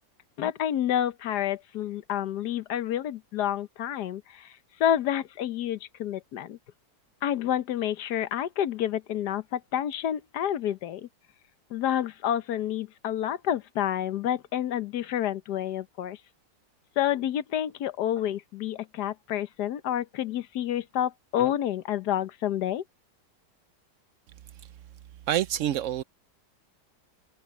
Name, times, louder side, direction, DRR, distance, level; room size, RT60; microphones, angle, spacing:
voice 1, 0.4-4.5 4.8-6.6 7.2-11.1 11.7-16.2 17.0-22.8, left 11 dB, 70° left, 1.4 m, -29 dB
voice 2, 25.3-26.0, right 11 dB, 80° right, 0.6 m, -26 dB
omnidirectional pair, 1.9 m